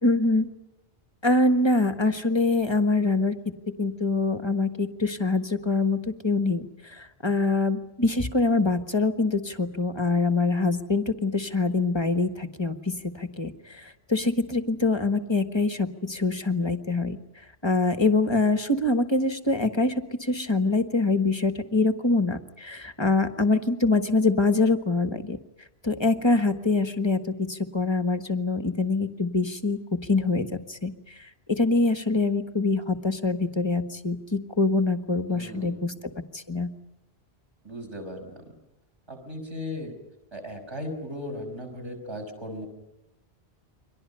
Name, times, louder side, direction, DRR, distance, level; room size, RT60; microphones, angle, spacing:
voice 1, 0.0-0.5 1.2-3.5 3.8-17.2 17.6-19.9 20.2-25.4 25.8-29.8 30.1-30.9 31.5-35.9 36.3-36.7, left 3 dB, 25° left, 8 dB, 1.5 m, -24 dB
voice 2, 35.3-35.9 37.6-38.4 39.1-39.9 40.3-42.7, left 1 dB, 25° right, 4 dB, 5.9 m, -37 dB
29.5 x 23.5 x 5.6 m, 0.92 s
omnidirectional pair, 1.1 m